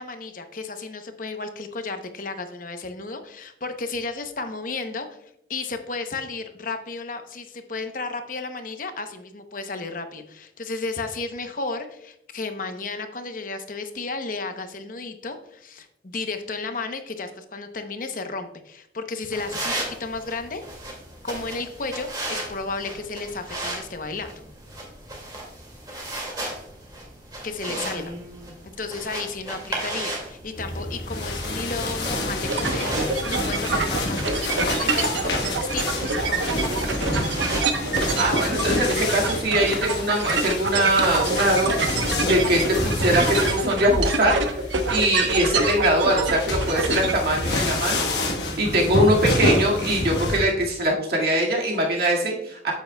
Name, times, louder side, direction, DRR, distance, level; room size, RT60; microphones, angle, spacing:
voice 1, 0.0-5.2 5.5-20.6 21.2-24.3 27.4-28.1 28.8-36.6, left 3 dB, 45° left, 7 dB, 0.8 m, -33 dB
sound 1, 19.3-38.7, right 1 dB, 20° right, 2.1 m, -36 dB
sound 2, 30.6-50.5, left 1 dB, 65° left, 1.2 m, -28 dB
sound 3, 32.5-47.1, right 4 dB, 85° right, 1.0 m, -26 dB
voice 2, 38.2-44.4 44.9-52.7, right 1 dB, 55° right, -2 dB, 2.0 m, -22 dB
8.9 x 8.1 x 2.3 m, 0.74 s
head